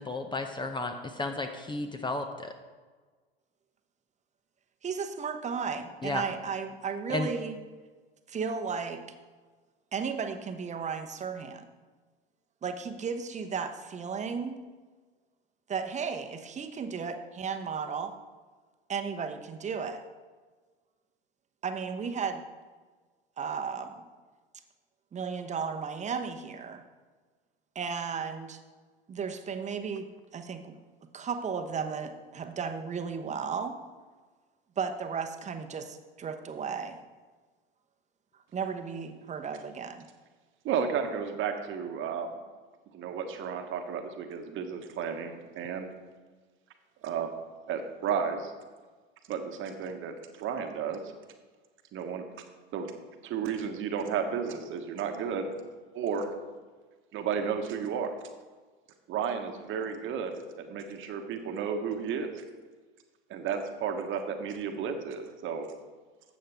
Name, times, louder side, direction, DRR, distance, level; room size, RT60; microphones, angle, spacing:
voice 1, 0.0-2.5 6.0-6.2 7.1-7.3, left 2 dB, 15° left, 6 dB, 0.7 m, -33 dB
voice 2, 4.8-7.6 8.3-9.1 9.9-11.7 12.6-14.6 15.7-18.1 18.9-20.0 21.6-22.4 23.4-24.0 25.1-26.8 27.7-28.6 29.1-30.8 31.1-33.8 34.8-37.0 38.5-40.1, right 6 dB, 25° right, 7 dB, 0.9 m, -34 dB
voice 3, 40.6-42.3 42.9-46.0 47.0-47.3 47.7-48.5 49.3-51.0 51.9-52.2 52.7-52.9 53.2-55.5 55.9-56.3 57.1-58.1 59.1-62.4 63.3-65.7, right 6 dB, 40° right, 6 dB, 1.2 m, -33 dB
12.5 x 7.7 x 3.5 m, 1.4 s
hypercardioid pair, 85°, 30 cm